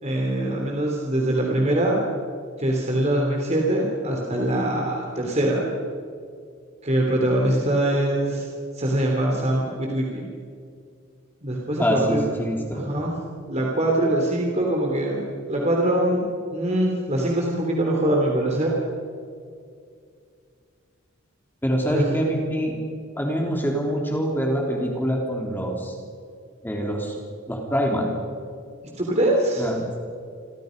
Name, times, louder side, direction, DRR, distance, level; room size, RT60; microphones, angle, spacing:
voice 1, 0.0-2.0 2.6-5.7 6.8-8.5 8.7-10.3 11.4-12.3 12.7-13.1 13.5-15.2 15.5-16.2 16.5-18.7 21.9-22.2 29.0-29.7, right 1 dB, 35° right, -1 dB, 3.4 m, -23 dB
voice 2, 11.8-12.9 21.6-22.8 23.2-25.9 26.6-27.2 27.5-28.2 29.6-29.8, equal, 10° left, 0 dB, 3.3 m, -25 dB
29.0 x 24.5 x 5.3 m, 2.3 s
head